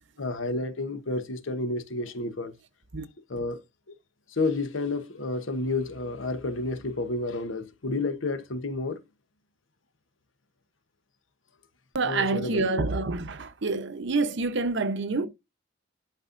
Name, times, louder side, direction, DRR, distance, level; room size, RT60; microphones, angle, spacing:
voice 1, 0.2-2.5 3.3-3.6 4.3-9.0 12.0-12.8, left 2 dB, 80° left, 1.0 m, -30 dB
voice 2, 11.9-15.3, right 3 dB, 65° right, 0.8 m, -27 dB
11.5 x 4.1 x 2.5 m
head